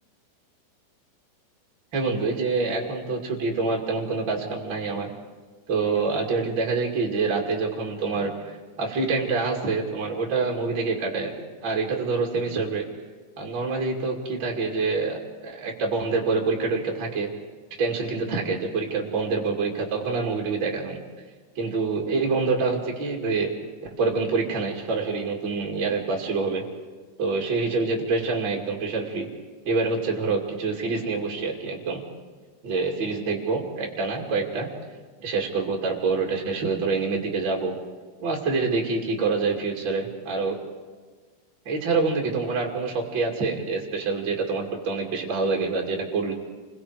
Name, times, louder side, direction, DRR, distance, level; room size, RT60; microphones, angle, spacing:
voice 1, 1.9-5.1 5.7-12.8 13.4-17.3 17.8-21.0 21.6-23.5 24.0-26.6 27.2-29.3 29.6-32.0 32.6-34.7 35.2-37.8 38.2-40.6 41.7-46.3, right 4 dB, 35° right, -1 dB, 2.2 m, -26 dB
29.0 x 22.0 x 4.8 m, 1.5 s
omnidirectional pair, 5.1 m